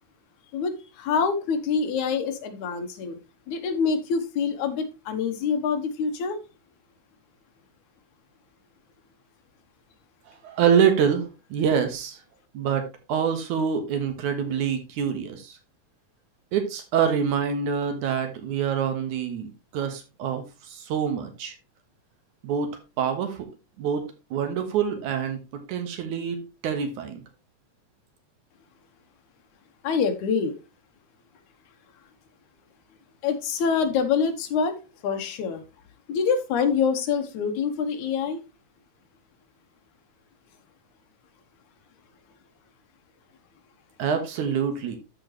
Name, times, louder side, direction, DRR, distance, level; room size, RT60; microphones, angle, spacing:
voice 1, 0.5-3.2 3.5-6.4 29.8-30.5 33.2-34.8 35.0-35.6 36.1-38.4, left 6 dB, 80° left, 7 dB, 2.5 m, -25 dB
voice 2, 10.4-12.2 12.5-15.6 16.5-21.5 22.4-22.7 23.0-23.5 23.8-25.4 25.7-27.2 44.0-45.0, right 7 dB, 80° right, 6 dB, 2.8 m, -26 dB
13.0 x 4.8 x 3.1 m, 0.28 s
omnidirectional pair, 3.4 m